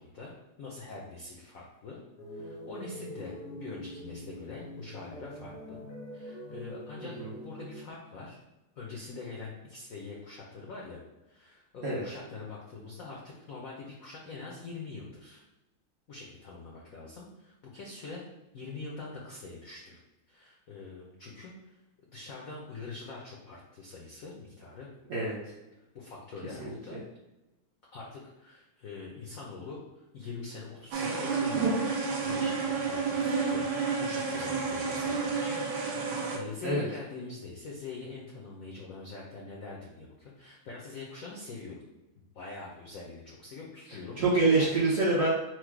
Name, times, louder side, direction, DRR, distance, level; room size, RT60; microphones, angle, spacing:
voice 1, 0.0-2.0 2.3-5.8 6.1-8.4 8.8-15.4 16.1-18.2 18.5-20.0 20.3-21.8 22.1-24.9 25.9-27.0 27.9-31.8 32.2-35.6 35.9-41.8 42.2-44.2 44.5-44.8, left 3 dB, 75° left, -2 dB, 0.7 m, -44 dB
sound 1, 2.2-7.8, equal, 90° left, 2.2 m, -44 dB
sound 2, 30.9-36.4, right 4 dB, 75° right, 1.5 m, -30 dB
voice 2, 43.9-45.3, right 2 dB, 55° right, -7 dB, 0.9 m, -26 dB
4.7 x 2.1 x 4.6 m, 1.0 s
omnidirectional pair, 2.3 m